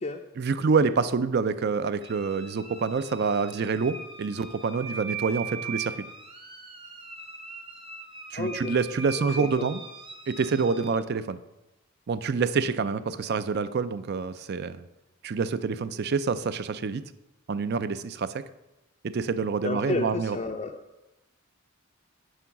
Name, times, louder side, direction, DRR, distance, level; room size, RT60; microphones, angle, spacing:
voice 1, 0.4-5.9 8.3-9.8 10.3-11.4 12.1-14.9 15.2-17.0 17.5-18.4 19.0-20.4, right 5 dB, 45° right, 13 dB, 0.4 m, -27 dB
sound 1, 2.0-10.9, right 4 dB, 25° right, 0.9 m, -40 dB
voice 2, 8.3-8.7 9.2-9.7 19.6-20.7, left 2 dB, 30° left, 2 dB, 0.4 m, -31 dB
10.0 x 4.6 x 5.8 m, 0.94 s
head